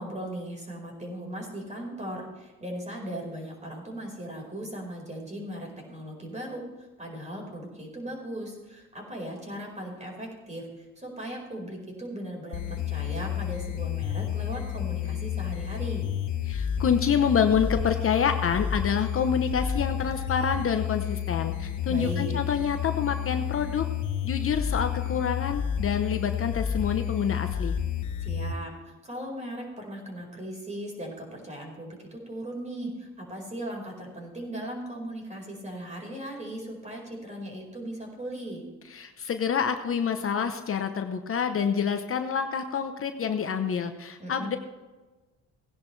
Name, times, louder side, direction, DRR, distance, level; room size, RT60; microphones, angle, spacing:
voice 1, 0.0-6.6 7.0-10.7 11.0-16.1 21.9-22.4 28.2-28.7 29.0-38.6 44.2-44.5, right 1 dB, 25° right, -1 dB, 4.8 m, -38 dB
sound 1, 12.5-28.5, left 9 dB, 75° left, 1.0 m, -30 dB
voice 2, 16.5-23.8 24.2-27.7 38.9-44.6, left 7 dB, 45° left, 7 dB, 0.9 m, -27 dB
17.5 x 10.5 x 3.3 m, 1.2 s
cardioid pair, 90°, 30 cm